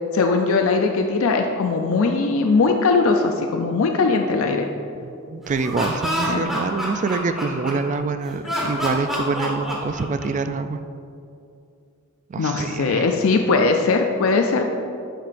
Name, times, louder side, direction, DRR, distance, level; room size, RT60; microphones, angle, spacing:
voice 1, 0.1-4.7 6.2-6.4 12.4-14.6, left 4 dB, 65° left, 4 dB, 0.5 m, -20 dB
voice 2, 5.0-10.8 12.3-13.1, right 4 dB, 35° right, 9 dB, 0.3 m, -26 dB
Laughter, 5.5-8.0 8.4-10.5, equal, ahead, 1.3 m, -27 dB
8.8 x 7.5 x 2.6 m, 2.5 s
head